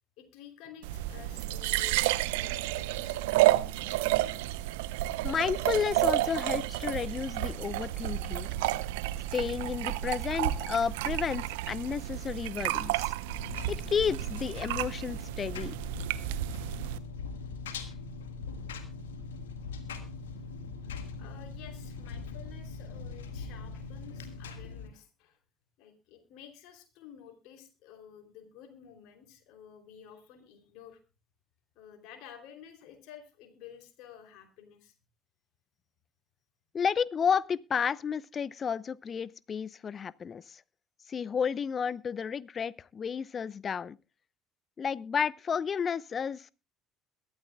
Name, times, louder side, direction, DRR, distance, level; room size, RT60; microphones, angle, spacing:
voice 1, 0.2-3.7 4.6-4.7 20.4-20.5 20.8-25.4 25.8-31.0 31.7-34.9, left 9 dB, 60° left, 3.0 m, -52 dB
sound 1, 0.8-17.0, right 15 dB, 70° right, 0.7 m, -31 dB
voice 2, 5.2-8.5 9.3-13.1 13.7-15.7 36.7-40.6 41.1-44.0 44.8-46.5, left 7 dB, 35° left, 0.6 m, -32 dB
Engine, 13.3-24.9, left 4 dB, 75° left, 1.5 m, -41 dB
22.0 x 12.5 x 2.2 m
figure-of-eight pair, 60°, 0 cm